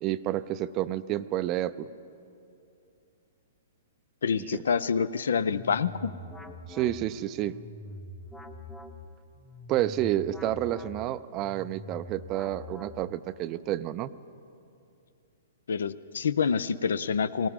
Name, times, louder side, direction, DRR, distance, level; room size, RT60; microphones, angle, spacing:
voice 1, 0.0-1.9 4.4-4.6 6.7-7.6 9.7-14.1, right 13 dB, 35° right, 16 dB, 0.4 m, -30 dB
voice 2, 4.2-6.1 15.7-17.5, left 6 dB, 75° left, 17 dB, 0.4 m, -27 dB
sound 1, 5.3-13.4, left 1 dB, 5° left, 0.8 m, -44 dB
19.0 x 18.0 x 3.7 m, 2.6 s
hypercardioid pair, 125°, 0 cm